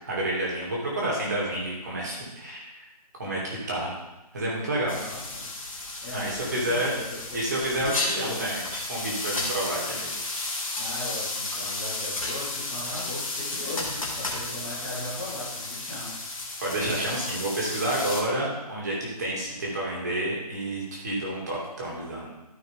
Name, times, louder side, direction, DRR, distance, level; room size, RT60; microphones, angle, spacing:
voice 1, 0.0-2.8 3.2-3.9 4.3-5.0 6.1-6.9 7.3-8.6 8.9-10.1 16.6-22.3, right 1 dB, 25° right, -3 dB, 2.4 m, -29 dB
sound 1, 4.9-18.2, left 2 dB, 55° left, 2.3 m, -33 dB
voice 2, 4.9-5.5 6.0-8.4 10.8-16.2, left 1 dB, ahead, -21 dB, 1.6 m, -38 dB
13.5 x 5.6 x 3.6 m, 1.0 s
hypercardioid pair, 175°, 21 cm